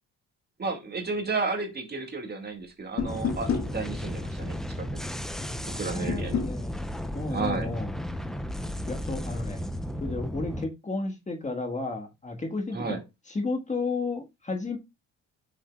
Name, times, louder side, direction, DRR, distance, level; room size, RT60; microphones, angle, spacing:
voice 1, 0.6-5.0 5.8-6.4 7.3-7.7 12.7-13.0, right 4 dB, 35° right, 2.1 m, -32 dB
sound 1, 3.0-3.7 6.1-6.6, left 7 dB, 60° left, 1.8 m, -29 dB
sound 2, 3.0-10.6, left 1 dB, ahead, 0.7 m, -34 dB
voice 2, 5.8-6.8 7.1-7.9 8.9-9.6 10.0-13.0 13.3-14.8, left 3 dB, 25° left, 1.7 m, -32 dB
8.5 x 6.5 x 2.4 m
cardioid pair, 90°, 30 cm